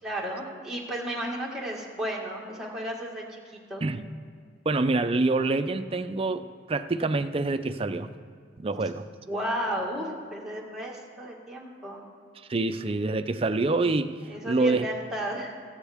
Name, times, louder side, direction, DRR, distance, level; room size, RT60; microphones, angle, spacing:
voice 1, 0.0-3.4 3.7-3.8 9.3-12.0 14.3-15.6, right 1 dB, 5° right, -4 dB, 1.8 m, -33 dB
voice 2, 4.7-8.1 8.6-9.0 12.5-14.1 14.5-14.9, right 3 dB, 30° right, 8 dB, 0.5 m, -26 dB
23.0 x 8.1 x 3.5 m, 2.2 s
head